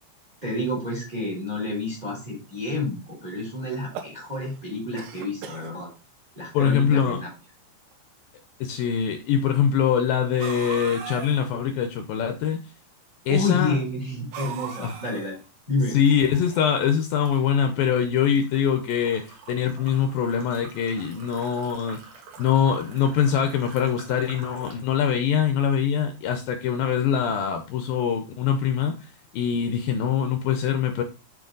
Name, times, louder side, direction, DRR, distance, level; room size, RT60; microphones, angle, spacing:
voice 1, 0.4-5.9 6.3-7.3 13.3-15.4 15.7-16.0, left 2 dB, 10° right, 3.2 m, -29 dB
sound 1, 3.7-4.6 5.0-5.7 6.5-6.6 6.9-7.0 7.9-8.0 10.4-11.4 14.3-15.5, right 7 dB, 80° right, 3.1 m, -37 dB
voice 2, 6.5-7.2 8.6-12.6 13.3-13.8 14.8-15.0 15.9-22.0 22.4-28.9 29.3-31.0, left 8 dB, 75° left, 2.3 m, -23 dB
sound 2, 15.9-16.9 17.3-24.9, right 5 dB, 60° right, 2.9 m, -47 dB
7.4 x 6.0 x 3.9 m
omnidirectional pair, 4.6 m